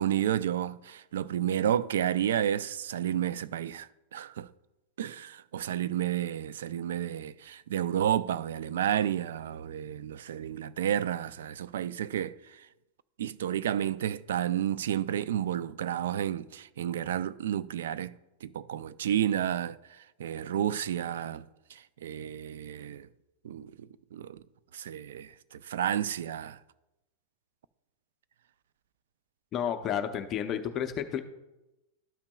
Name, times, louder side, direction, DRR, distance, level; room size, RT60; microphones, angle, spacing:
voice 1, 0.0-4.5 5.0-12.7 13.2-18.1 18.4-23.1 23.4-24.4 24.7-26.6, right 10 dB, 85° right, 0.3 m, -31 dB
voice 2, 29.5-31.2, left 9 dB, 35° left, 0.5 m, -31 dB
12.5 x 5.8 x 2.3 m
supercardioid pair, 135°, 0 cm